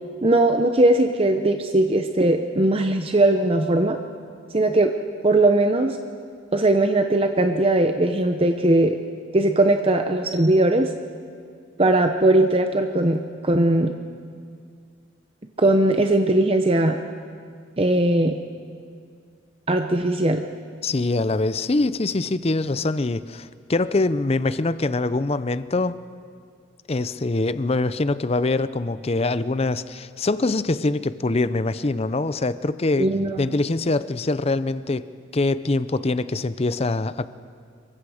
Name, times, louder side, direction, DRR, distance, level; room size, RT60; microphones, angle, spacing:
voice 1, 0.2-4.0 4.5-4.9 5.2-6.0 6.5-9.0 9.3-10.9 11.8-13.9 15.6-17.0 17.8-18.4 19.7-20.4 33.0-33.4, right 2 dB, 30° right, 5 dB, 0.8 m, -19 dB
voice 2, 20.8-26.0 26.9-33.1 33.4-37.3, left 2 dB, 30° left, 14 dB, 0.6 m, -24 dB
26.5 x 23.5 x 5.0 m, 2.2 s
head